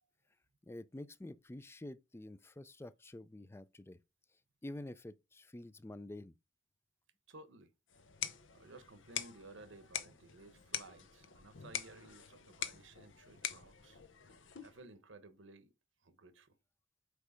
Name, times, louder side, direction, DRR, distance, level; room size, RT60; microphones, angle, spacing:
voice 1, 0.6-4.0 4.6-6.3, left 1 dB, 15° left, 0.4 m, -48 dB
voice 2, 7.3-7.7 8.5-14.0 14.6-15.7 16.0-16.5, right 2 dB, 80° right, 1.0 m, -56 dB
sound 1, 7.9-14.9, left 9 dB, 80° left, 0.9 m, -45 dB
8.2 x 3.2 x 5.0 m
head